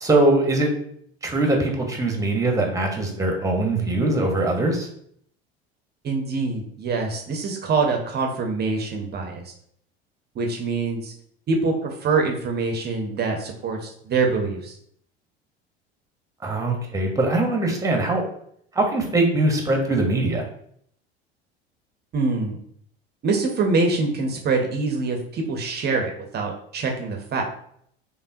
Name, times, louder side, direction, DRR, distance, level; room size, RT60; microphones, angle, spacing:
voice 1, 0.0-0.7 1.2-4.9 16.4-18.2 18.7-20.5, right 2 dB, 10° right, 2 dB, 1.0 m, -22 dB
voice 2, 6.0-9.5 10.4-11.1 11.5-14.8 22.1-22.6 23.2-27.4, right 4 dB, 30° right, 2 dB, 0.7 m, -24 dB
5.3 x 2.2 x 2.7 m, 0.66 s
hypercardioid pair, 75°, 31 cm